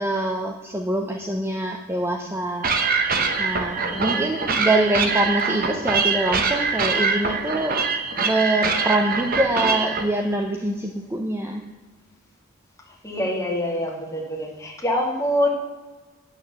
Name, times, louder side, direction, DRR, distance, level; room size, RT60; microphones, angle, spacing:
voice 1, 0.0-7.8 8.2-11.6, right 1 dB, 10° right, 3 dB, 0.6 m, -25 dB
voice 2, 1.9-2.3 3.9-4.3 12.9-15.5, left 1 dB, 15° left, -2 dB, 2.2 m, -26 dB
sound 1, 2.6-10.0, right 4 dB, 45° right, 1.0 m, -23 dB
8.8 x 6.5 x 7.3 m, 1.2 s
head